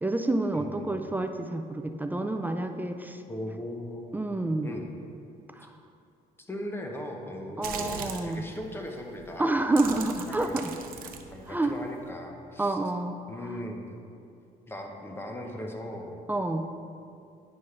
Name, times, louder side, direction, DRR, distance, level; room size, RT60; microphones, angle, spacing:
voice 1, 0.0-3.2 4.1-4.7 5.6-5.7 7.6-8.4 9.4-10.7 11.5-11.8 12.6-13.2 16.3-16.7, right 2 dB, 10° right, 6 dB, 0.3 m, -28 dB
voice 2, 0.5-0.9 3.3-4.2 4.6-4.9 6.5-9.7 10.3-10.6 11.0-12.8 13.3-13.8 14.7-16.2, left 1 dB, 15° left, 2 dB, 0.9 m, -38 dB
sound 1, 7.6-8.3 9.1-9.3 9.6-12.1, right 7 dB, 60° right, 0.7 m, -39 dB
9.9 x 5.4 x 3.3 m, 2.5 s
cardioid pair, 110°, 17 cm